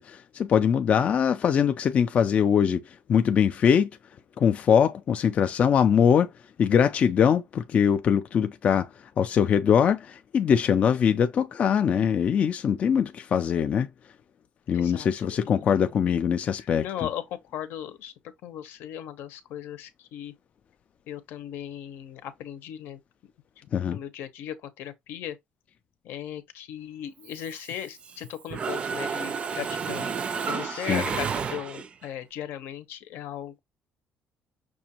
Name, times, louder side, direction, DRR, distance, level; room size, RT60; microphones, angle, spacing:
voice 1, 0.0-3.9 4.4-6.3 6.6-13.9 14.7-16.8 23.7-24.0 30.7-31.0, left 7 dB, 35° left, 0.3 m, -22 dB
voice 2, 14.7-15.9 16.6-18.1 18.4-20.3 21.1-23.0 23.6-25.4 26.0-30.1 30.5-33.6, left 10 dB, 80° left, 0.8 m, -37 dB
Mechanisms, 27.3-28.2 28.5-32.1, right 6 dB, 30° right, 0.4 m, -31 dB
6.0 x 2.5 x 2.8 m
cardioid pair, 165°, 4 cm